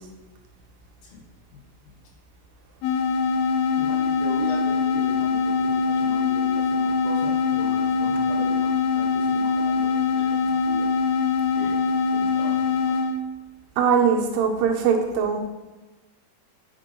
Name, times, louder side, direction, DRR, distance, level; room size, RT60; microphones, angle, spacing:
voice 1, 1.5-2.0 3.8-11.0 11.6-11.8 12.1-13.0, left 2 dB, 70° left, -2 dB, 3.3 m, -39 dB
sound 1, 2.8-13.2, left 5 dB, 85° left, 2.5 m, -23 dB
voice 2, 13.8-15.4, right 6 dB, 85° right, 2 dB, 2.9 m, -21 dB
8.2 x 6.1 x 4.4 m, 1.2 s
omnidirectional pair, 4.6 m